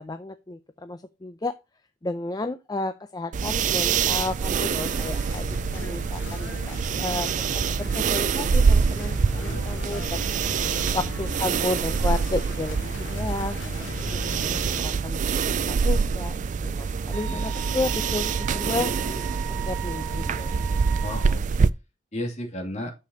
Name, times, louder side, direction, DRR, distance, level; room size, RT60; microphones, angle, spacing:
voice 1, 0.0-1.5 2.0-7.3 7.5-10.2 10.9-15.2 15.5-19.2 19.7-20.6, left 2 dB, 20° left, 10 dB, 0.5 m, -32 dB
sound 1, 3.3-21.7, right 5 dB, 40° right, 0.4 m, -25 dB
sound 2, 4.6-14.8, left 4 dB, 80° left, 0.7 m, -40 dB
voice 2, 9.3-10.3 10.6-11.0 17.3-17.5 21.0-21.7 22.1-22.9, left 1 dB, 35° left, 2 dB, 2.5 m, -35 dB
Wind instrument woodwind instrument, 17.1-21.4, right 11 dB, 60° right, 2.0 m, -38 dB
9.2 x 6.9 x 2.8 m, 0.26 s
head